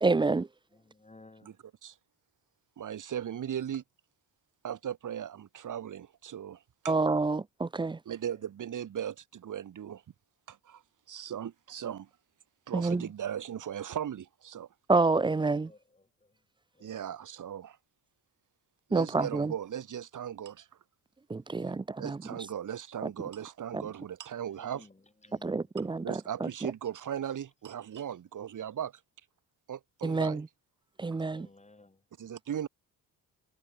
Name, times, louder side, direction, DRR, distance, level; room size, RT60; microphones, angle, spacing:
voice 1, 0.0-0.5 6.9-8.0 12.7-13.0 14.9-15.7 18.9-19.5 21.3-22.2 23.0-23.1 23.7-23.8 25.4-26.7 30.0-30.5 31.0-31.5, right 3 dB, 15° right, 0.4 m, -28 dB
voice 2, 0.9-1.5 15.7-15.8 16.8-16.9 24.5-24.9 25.2-25.5 31.3-32.0, left 2 dB, 15° left, 4.9 m, -55 dB
voice 3, 2.8-3.8 4.6-6.9 8.1-10.0 10.5-10.8 11.1-12.1 12.7-14.7 16.8-17.8 18.9-20.7 22.0-24.9 26.0-28.9 29.7-30.4 32.2-32.7, right 9 dB, 50° right, 1.9 m, -38 dB
cardioid pair, 85°, 39 cm